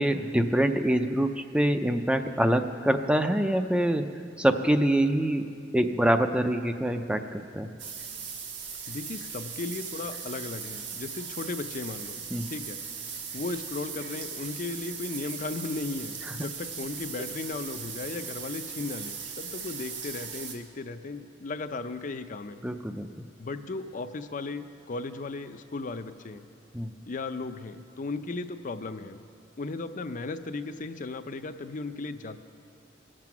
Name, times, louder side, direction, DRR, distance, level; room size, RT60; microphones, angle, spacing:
voice 1, 0.0-4.1 4.4-5.4 5.7-7.7 12.3-12.5 22.6-23.1 26.7-26.9, right 1 dB, 5° right, 7 dB, 0.4 m, -25 dB
sound 1, 7.8-20.6, right 6 dB, 75° right, 1.6 m, -39 dB
voice 2, 8.9-12.2 12.5-12.8 13.3-22.6 23.4-26.4 27.1-29.2 29.6-32.4, left 3 dB, 45° left, 10 dB, 0.5 m, -36 dB
22.0 x 7.6 x 6.0 m, 2.4 s
head